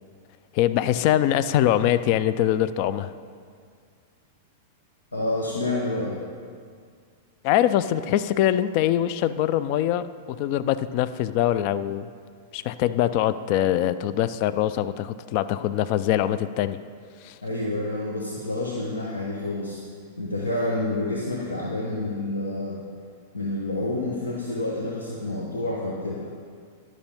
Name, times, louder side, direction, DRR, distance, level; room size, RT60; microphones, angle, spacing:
voice 1, 0.5-3.1 7.4-10.0 10.4-12.1 12.5-16.8 17.2-17.4, left 12 dB, 50° left, 14 dB, 0.3 m, -23 dB
voice 2, 5.1-6.2 17.4-19.8 20.2-22.8 23.3-26.3, left 2 dB, 85° left, -3 dB, 1.0 m, -28 dB
11.5 x 6.1 x 5.5 m, 2.1 s
figure-of-eight pair, 95°, 0 cm